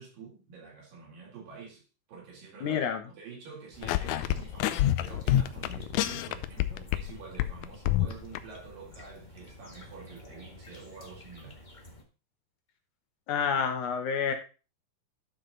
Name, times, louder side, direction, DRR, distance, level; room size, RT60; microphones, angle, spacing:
voice 1, 0.0-1.8 2.1-11.6, right 5 dB, 80° right, 5.3 m, -47 dB
voice 2, 2.6-3.0 13.3-14.3, left 6 dB, 70° left, 2.4 m, -28 dB
sound 1, 3.7-12.0, left 1 dB, 45° left, 0.6 m, -50 dB
sound 2, 3.8-7.1 7.4-8.4, left 13 dB, 85° left, 1.7 m, -27 dB
11.5 x 6.1 x 4.0 m
omnidirectional pair, 3.9 m